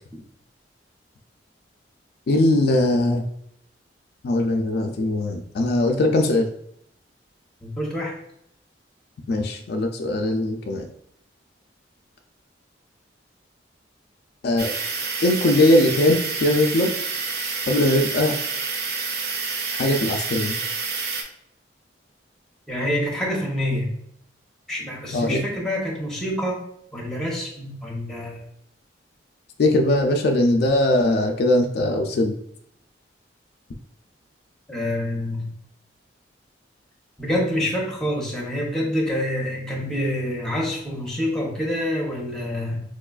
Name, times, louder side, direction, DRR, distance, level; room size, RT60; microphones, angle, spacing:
voice 1, 2.3-3.2 4.2-6.5 9.3-10.9 14.4-14.7 15.2-16.9 17.7-18.3 19.7-20.6 25.1-25.4 29.6-32.4, left 1 dB, 60° left, 3 dB, 0.3 m, -20 dB
voice 2, 7.6-8.1 22.7-23.9 24.7-26.6 26.9-28.4 34.7-35.5 37.2-42.8, left 1 dB, 5° left, -3 dB, 0.8 m, -26 dB
sound 1, 14.6-21.2, right 4 dB, 60° right, 0.5 m, -28 dB
4.6 x 2.3 x 2.3 m, 0.72 s
head